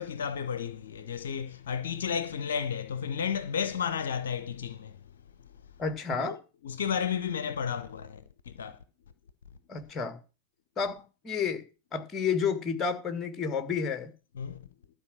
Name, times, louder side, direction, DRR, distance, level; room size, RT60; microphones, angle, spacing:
voice 1, 0.0-5.0 6.2-6.4 6.6-8.8 14.4-14.6, left 7 dB, 65° left, 0.7 m, -32 dB
voice 2, 5.8-6.4 9.7-10.2 10.8-11.6 11.9-14.1, left 6 dB, 20° left, 1.8 m, -30 dB
12.5 x 4.9 x 7.6 m
figure-of-eight pair, 90°, 0 cm